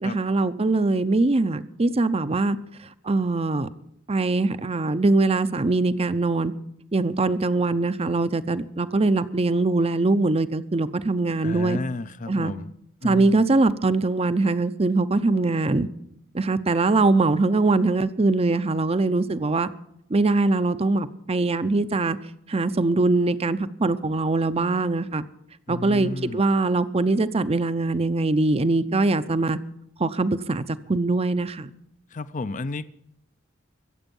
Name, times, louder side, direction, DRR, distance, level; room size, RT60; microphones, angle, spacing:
voice 1, 0.0-2.6 3.0-3.7 4.1-6.5 6.9-11.8 12.3-12.5 13.0-15.9 16.3-19.7 20.1-22.2 22.5-25.2 25.7-29.6 30.0-30.6 30.9-31.7, right 3 dB, 30° right, 0.6 m, -22 dB
voice 2, 11.4-12.7 13.0-13.5 25.7-26.4 32.1-32.8, left 3 dB, 40° left, 0.6 m, -32 dB
24.0 x 8.0 x 5.4 m
head